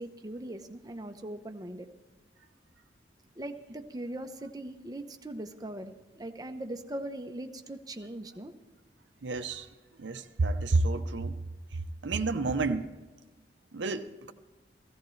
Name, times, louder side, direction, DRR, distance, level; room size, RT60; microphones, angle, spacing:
voice 1, 0.0-1.9 3.4-8.6, right 1 dB, 20° right, 0.8 m, -40 dB
voice 2, 9.2-9.7 10.0-11.4 11.7-12.9 13.7-14.3, right 3 dB, 85° right, 0.7 m, -30 dB
16.0 x 15.0 x 3.2 m
head